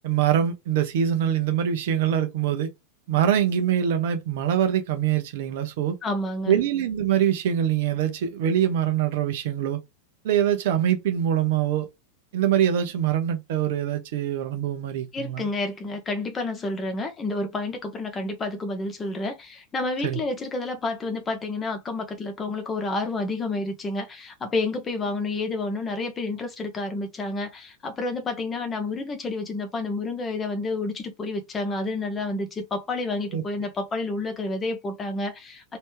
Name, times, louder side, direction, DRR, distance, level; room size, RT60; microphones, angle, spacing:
voice 1, 0.0-2.7 3.1-6.0 6.5-9.8 10.2-11.9 12.3-15.5 20.0-20.2 33.3-33.4, right 10 dB, 55° right, 0.8 m, -24 dB
voice 2, 6.0-6.6 15.1-35.8, left 2 dB, 20° left, 1.0 m, -30 dB
3.2 x 2.8 x 3.2 m
figure-of-eight pair, 90°, 0 cm